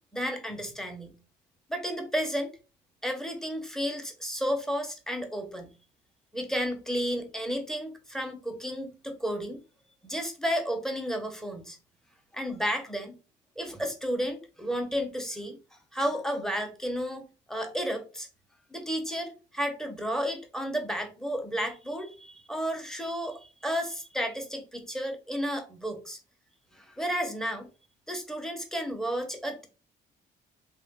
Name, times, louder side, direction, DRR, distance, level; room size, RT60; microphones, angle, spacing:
voice 1, 0.1-1.2 1.7-2.5 3.0-5.7 6.3-9.6 10.0-11.8 12.3-13.2 13.6-15.6 15.9-18.3 18.7-26.2 26.8-27.7 28.1-29.7, equal, ahead, 6 dB, 0.9 m, -32 dB
3.3 x 2.5 x 3.7 m, 0.33 s
cardioid pair, 90°, 20 cm